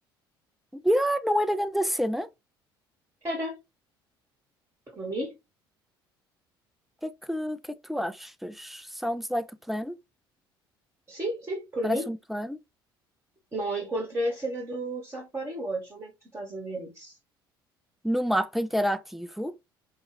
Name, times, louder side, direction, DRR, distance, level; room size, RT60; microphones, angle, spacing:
voice 1, 0.7-2.3 7.0-7.6 7.9-10.0 11.8-12.6 18.0-19.5, equal, ahead, 0.4 m, -28 dB
voice 2, 3.2-3.6 5.0-5.3 9.0-9.1 11.1-12.1 13.5-17.2, right 1 dB, 20° right, 1.1 m, -32 dB
4.1 x 2.3 x 3.0 m
figure-of-eight pair, 55°, 12 cm